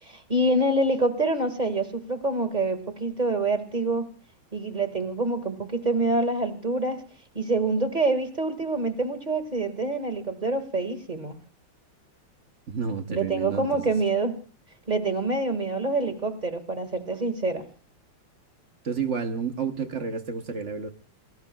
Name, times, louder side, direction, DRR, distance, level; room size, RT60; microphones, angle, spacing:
voice 1, 0.0-4.1 4.5-7.0 7.4-11.3 13.1-14.4 14.9-17.7, right 2 dB, 20° right, 9 dB, 1.8 m, -26 dB
voice 2, 12.7-13.9 18.8-20.9, right 6 dB, 50° right, 7 dB, 0.9 m, -30 dB
28.0 x 20.0 x 2.3 m, 0.38 s
omnidirectional pair, 2.4 m